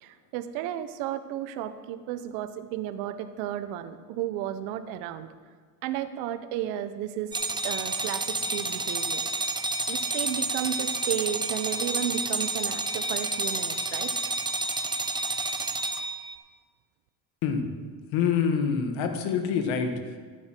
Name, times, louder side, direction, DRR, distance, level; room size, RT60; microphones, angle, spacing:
voice 1, 0.0-5.3 5.8-7.3 7.6-9.2 9.9-14.1, right 11 dB, 90° right, 12 dB, 0.9 m, -33 dB
sound 1, 7.3-16.4, right 2 dB, 10° right, 0.6 m, -30 dB
voice 2, 18.1-20.2, left 6 dB, 75° left, 6 dB, 1.6 m, -26 dB
13.0 x 9.4 x 4.5 m, 1.6 s
supercardioid pair, 95°, 47 cm